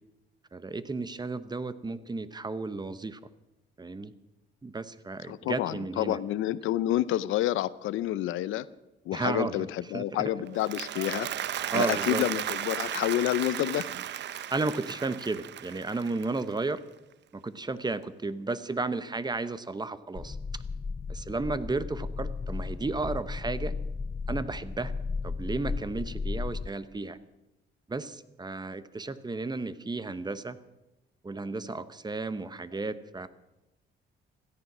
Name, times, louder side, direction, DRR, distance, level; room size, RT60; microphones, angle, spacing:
voice 1, 0.5-3.2 3.8-4.1 4.6-6.2 9.1-9.7 9.9-10.3 11.7-12.2 14.5-16.8 17.3-20.4 21.1-23.7 24.3-24.9 25.2-27.2 27.9-30.6 31.2-33.3, right 3 dB, 20° right, 14 dB, 0.9 m, -33 dB
voice 2, 5.3-8.7 9.1-11.3 11.7-13.9, left 14 dB, 85° left, 17 dB, 0.6 m, -29 dB
Applause, 10.4-16.8, right 11 dB, 65° right, 0.7 m, -35 dB
sound 1, 20.2-26.7, left 4 dB, 20° left, 0.5 m, -34 dB
17.0 x 13.5 x 6.1 m, 0.97 s
cardioid pair, 90°, 20 cm